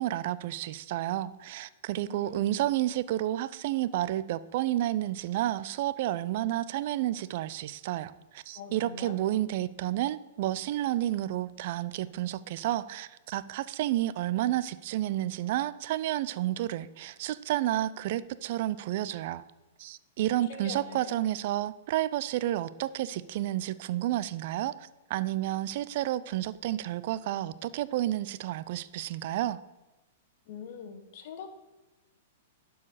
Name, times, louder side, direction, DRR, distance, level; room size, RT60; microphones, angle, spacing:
voice 1, 0.0-19.4 19.8-29.6, right 14 dB, 55° right, 16 dB, 0.4 m, -31 dB
voice 2, 2.0-2.5 8.5-9.2 20.2-21.2 30.5-31.5, left 5 dB, 55° left, 6 dB, 1.2 m, -43 dB
11.5 x 4.7 x 5.0 m, 1.1 s
figure-of-eight pair, 110°, 0 cm